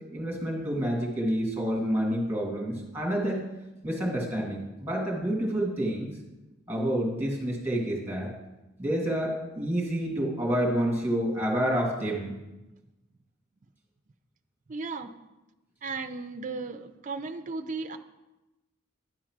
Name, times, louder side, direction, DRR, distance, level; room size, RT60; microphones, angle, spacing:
voice 1, 0.0-3.4 3.8-6.1 6.7-8.3 8.8-12.4, equal, 10° right, -2 dB, 2.0 m, -28 dB
voice 2, 14.7-15.1 15.8-18.0, right 4 dB, 40° right, 9 dB, 0.4 m, -35 dB
10.0 x 3.8 x 5.9 m, 1.0 s
head